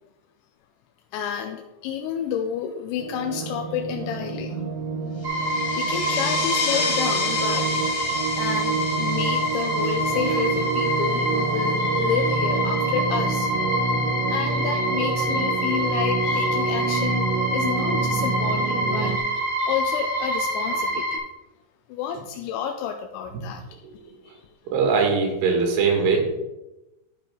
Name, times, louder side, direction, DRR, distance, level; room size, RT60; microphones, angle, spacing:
voice 1, 1.1-4.7 5.8-13.5 14.3-21.2 21.9-23.6 24.2-24.5, left 8 dB, 85° left, 4 dB, 2.9 m, -30 dB
sound 1, 3.0-19.2, right 5 dB, 90° right, 3.2 m, -28 dB
sound 2, 5.2-11.4, left 5 dB, 70° left, 3.4 m, -31 dB
sound 3, 5.2-21.2, equal, 45° right, 0.8 m, -26 dB
voice 2, 24.7-26.3, right 5 dB, 70° right, 1 dB, 3.8 m, -21 dB
12.0 x 5.9 x 3.8 m, 0.98 s
omnidirectional pair, 5.2 m